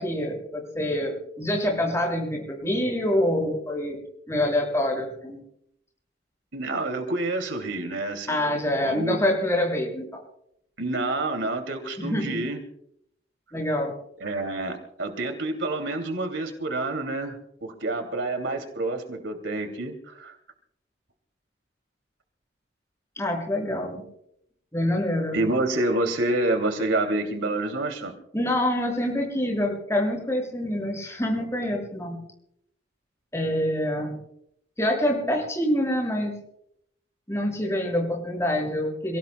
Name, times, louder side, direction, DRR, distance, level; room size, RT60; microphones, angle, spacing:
voice 1, 0.0-4.0 4.3-5.4 8.3-10.1 12.0-12.4 13.5-13.9 23.2-24.0 24.7-25.4 28.3-32.2 33.3-34.1 34.8-36.4 37.3-39.2, left 1 dB, 15° left, 0 dB, 6.4 m, -26 dB
voice 2, 6.5-9.2 10.8-12.6 14.2-20.3 25.3-28.2, right 2 dB, 90° right, 5 dB, 2.8 m, -28 dB
28.5 x 18.0 x 2.3 m, 0.74 s
head